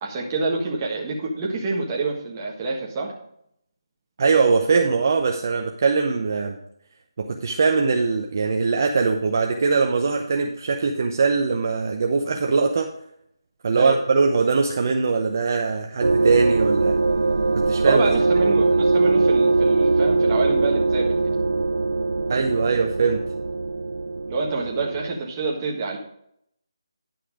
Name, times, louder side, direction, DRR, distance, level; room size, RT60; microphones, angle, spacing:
voice 1, 0.0-3.1 13.7-14.0 17.8-21.3 24.3-26.0, right 3 dB, 20° right, -1 dB, 1.5 m, -27 dB
voice 2, 4.2-6.6 7.2-12.9 13.6-17.0 17.7-18.1 22.3-23.2, right 4 dB, 40° right, 2 dB, 0.7 m, -21 dB
sound 1, 16.0-25.1, right 3 dB, 90° right, 0.4 m, -21 dB
10.5 x 5.8 x 4.9 m, 0.73 s
figure-of-eight pair, 170°, 3 cm